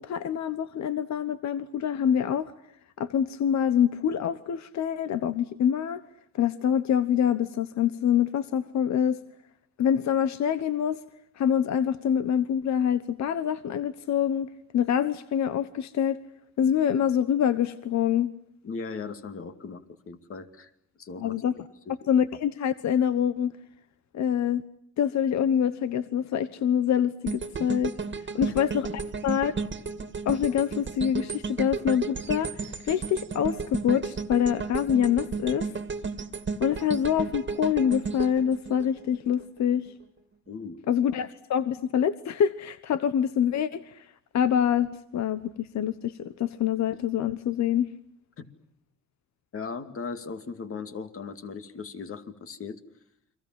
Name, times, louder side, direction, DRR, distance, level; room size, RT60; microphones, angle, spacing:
voice 1, 0.0-2.5 3.0-6.0 6.4-9.2 9.8-11.0 11.4-14.5 14.7-16.2 16.6-18.3 21.2-21.5 22.1-23.5 24.1-24.6 25.0-27.9 28.3-29.5 30.2-32.5 32.8-35.7 36.6-39.9 40.9-44.1 44.3-47.9, left 9 dB, 65° left, 12 dB, 1.2 m, -25 dB
voice 2, 18.6-20.7 21.0-21.4 21.9-22.0 28.3-28.6 40.5-40.8 48.4-48.5 49.5-52.8, left 5 dB, 45° left, 8 dB, 2.5 m, -38 dB
sound 1, 27.3-39.4 39.9-40.0, right 4 dB, 40° right, 2.2 m, -33 dB
30.0 x 24.0 x 7.6 m, 0.72 s
cardioid pair, 90°, 30 cm